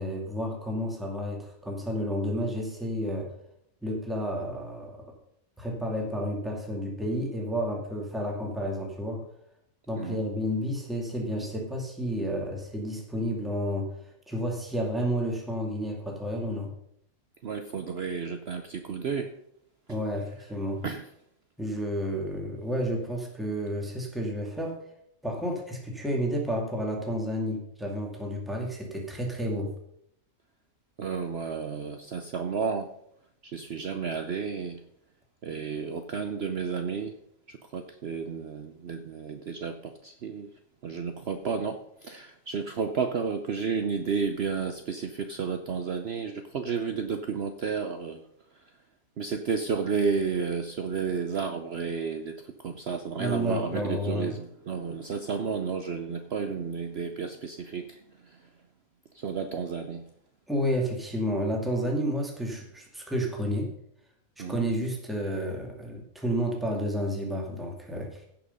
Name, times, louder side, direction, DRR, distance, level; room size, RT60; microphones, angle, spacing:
voice 1, 0.0-3.3 3.8-5.1 5.6-9.2 9.9-16.7 19.9-20.8 21.6-24.8 25.2-29.7 53.2-54.4 60.5-63.7 64.4-68.2, equal, ahead, 0 dB, 2.3 m, -31 dB
voice 2, 17.4-19.3 20.8-21.0 31.0-33.0 33.4-34.8 35.4-37.1 37.5-40.5 40.8-48.2 48.6-48.7 49.2-58.4 59.1-60.0 64.4-64.6, right 5 dB, 55° right, 7 dB, 0.9 m, -32 dB
16.5 x 5.9 x 5.4 m, 0.73 s
omnidirectional pair, 1.5 m